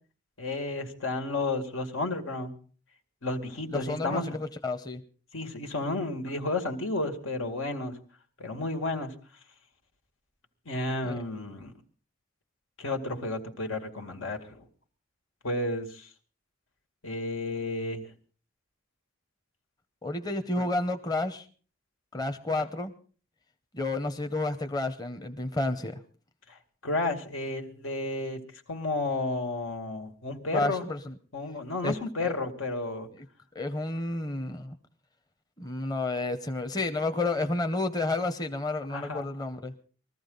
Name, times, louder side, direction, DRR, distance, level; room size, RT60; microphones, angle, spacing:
voice 1, 0.4-2.5 3.2-4.3 5.3-8.0 8.4-9.1 10.7-11.7 12.8-14.6 15.4-16.1 17.0-18.0 20.6-20.7 26.5-30.8 31.3-33.1 38.9-39.3, left 2 dB, 90° left, 5 dB, 2.2 m, -32 dB
voice 2, 3.7-5.0 11.0-11.2 20.0-21.5 22.1-22.9 23.7-26.0 30.5-31.2 31.8-32.3 33.5-34.8 35.6-39.7, left 2 dB, 20° left, 7 dB, 0.8 m, -31 dB
21.0 x 14.5 x 4.0 m, 0.40 s
head